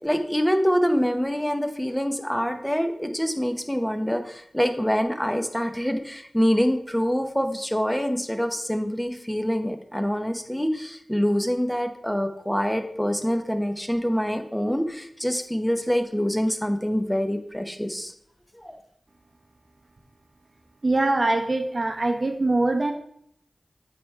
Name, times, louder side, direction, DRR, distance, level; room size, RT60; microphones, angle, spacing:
voice 1, 0.0-18.1 18.6-18.8, equal, 5° left, 6 dB, 0.9 m, -25 dB
voice 2, 20.8-22.9, right 2 dB, 50° right, 4 dB, 0.8 m, -23 dB
8.4 x 3.6 x 4.5 m, 0.70 s
cardioid pair, 45°, 0 cm